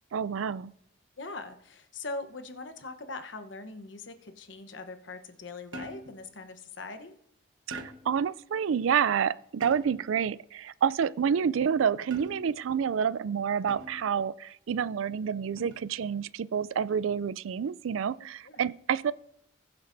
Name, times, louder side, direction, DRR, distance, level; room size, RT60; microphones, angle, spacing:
voice 1, 0.1-0.7 7.7-19.1, right 7 dB, 85° right, 0.4 m, -28 dB
voice 2, 1.2-7.1 15.6-15.8 18.4-18.6, left 3 dB, 70° left, 1.0 m, -41 dB
sound 1, 5.7-6.2 7.7-8.2 9.6-10.1 12.1-12.7 13.7-14.1 15.6-15.9, right 1 dB, 70° right, 1.2 m, -43 dB
20.0 x 8.0 x 2.7 m
head